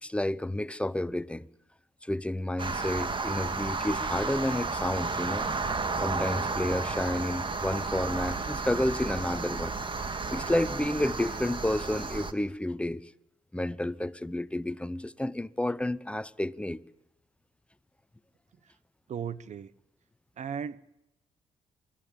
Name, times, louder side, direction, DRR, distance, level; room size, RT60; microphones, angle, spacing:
voice 1, 0.0-1.5 2.0-5.5 6.0-9.7 10.3-13.0 13.5-16.8, left 1 dB, 10° left, 1.0 m, -30 dB
sound 1, 2.6-12.3, right 4 dB, 35° right, 1.9 m, -32 dB
voice 2, 19.1-19.7 20.4-20.9, right 7 dB, 55° right, 1.1 m, -36 dB
29.0 x 13.5 x 8.9 m
supercardioid pair, 50°, 14 cm